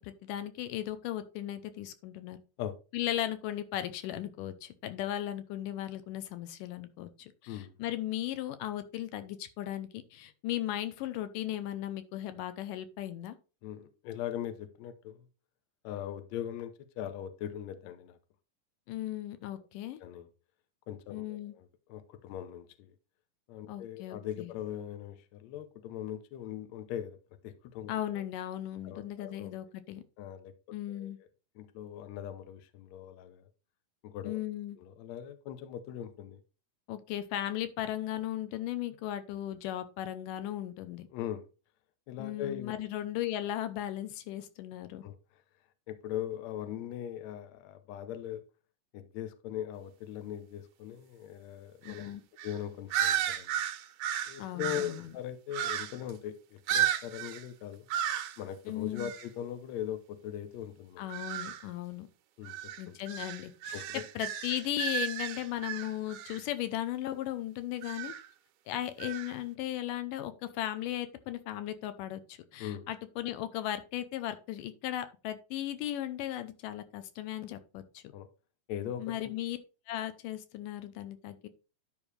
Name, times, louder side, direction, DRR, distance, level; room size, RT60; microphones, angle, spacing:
voice 1, 0.0-2.4 2.9-13.4 18.9-20.0 21.1-21.5 23.7-24.5 27.9-30.0 30.7-31.2 34.2-34.8 36.9-41.1 42.2-45.0 51.8-52.2 54.4-55.1 58.7-59.1 61.0-62.1 62.8-68.1 68.7-78.0 79.0-79.6 79.9-81.5, left 12 dB, 85° left, 2.3 m, -37 dB
voice 2, 13.6-15.3 15.8-18.2 20.0-20.3 20.9-22.9 23.5-27.2 27.4-28.2 28.8-29.5 30.2-30.5 30.9-31.1 31.6-33.5 34.0-34.4 34.8-36.4 41.1-41.5 42.1-42.7 45.0-45.2 45.9-48.4 48.9-52.2 52.4-53.5 54.3-57.9 58.4-61.1 62.4-63.0 63.7-64.0 72.6-72.9 78.1-78.3 78.7-79.3, left 10 dB, 70° left, 1.9 m, -40 dB
sound 1, 51.9-52.1 52.4-52.6 52.9-55.0 55.5-56.1 56.7-57.5 57.9-58.4 59.0-59.3 61.1-61.6 62.4-66.4 67.8-68.3 69.0-69.3, right 10 dB, 80° right, 2.3 m, -34 dB
11.0 x 5.4 x 3.2 m
omnidirectional pair, 3.9 m